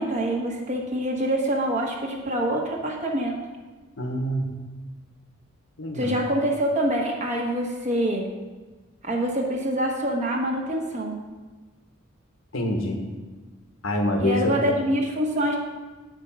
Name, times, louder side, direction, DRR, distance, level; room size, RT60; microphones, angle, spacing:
voice 1, 0.0-3.4 5.9-8.3 9.0-11.2 14.2-15.6, right 1 dB, 35° right, 0 dB, 1.2 m, -25 dB
voice 2, 4.0-4.6 5.8-6.2 12.5-13.0 13.8-14.6, equal, 85° left, 3 dB, 1.4 m, -26 dB
7.9 x 5.3 x 5.5 m, 1.3 s
head